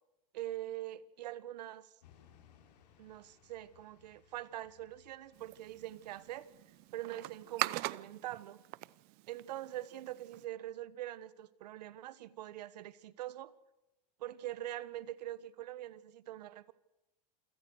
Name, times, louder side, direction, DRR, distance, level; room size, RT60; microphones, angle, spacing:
voice 1, 0.3-1.9 3.0-6.5 6.9-8.6 9.3-13.5 14.2-16.7, right 14 dB, 85° right, 16 dB, 1.4 m, -43 dB
sound 1, 2.0-8.1, left 9 dB, 85° left, 4.1 m, -66 dB
sound 2, 5.3-10.4, right 21 dB, 50° right, 0.8 m, -42 dB
28.0 x 16.5 x 6.4 m, 0.97 s
supercardioid pair, 130°, 21 cm